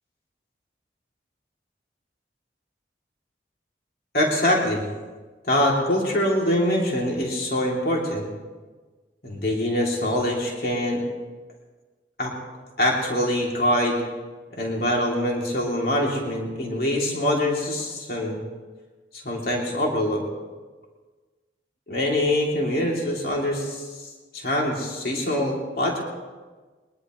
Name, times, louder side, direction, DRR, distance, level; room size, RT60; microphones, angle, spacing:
voice 1, 4.1-4.8 5.5-8.3 9.2-11.0 12.2-12.3 12.8-14.0 14.5-18.4 19.1-20.3 21.9-26.0, left 1 dB, 55° left, -2 dB, 2.8 m, -24 dB
22.0 x 20.0 x 3.1 m, 1.4 s
head